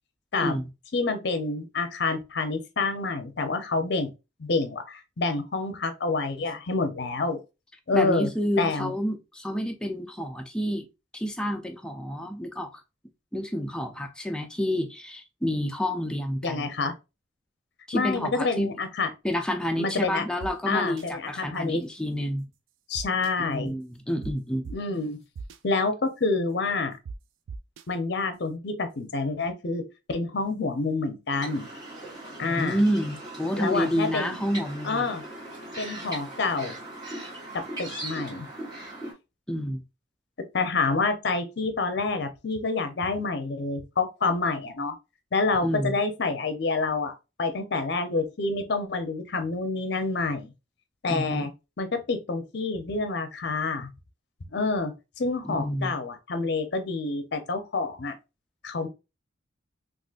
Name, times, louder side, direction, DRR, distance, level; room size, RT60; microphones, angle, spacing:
voice 1, 0.9-4.1 4.4-7.4 7.9-8.3 8.6-8.9 16.4-16.9 17.9-19.1 19.8-20.3 20.7-21.8 22.9-23.7 24.7-25.2 25.6-26.9 27.9-31.7 32.4-32.8 33.5-34.4 34.8-35.2 35.8-36.7 37.5-38.5 40.5-44.9 45.3-50.5 51.0-51.5 51.8-53.9 54.5-54.9 55.2-58.2 58.6-58.9, left 3 dB, 60° left, 0.6 m, -28 dB
voice 2, 7.9-10.9 11.1-12.7 13.3-16.7 17.9-18.7 19.2-22.5 23.4-24.7 32.4-35.1 39.5-39.8 45.6-46.0 51.1-51.5 55.4-55.9, equal, 5° left, 0.4 m, -29 dB
sound 1, 20.4-20.5 21.0-21.1 22.9-23.3 24.2-24.3 24.6-24.7 25.4-25.6 27.1-27.2 27.5-27.8, right 4 dB, 90° right, 0.3 m, -37 dB
sound 2, 31.3-39.1, right 1 dB, 20° right, 1.4 m, -39 dB
3.7 x 2.5 x 2.4 m
head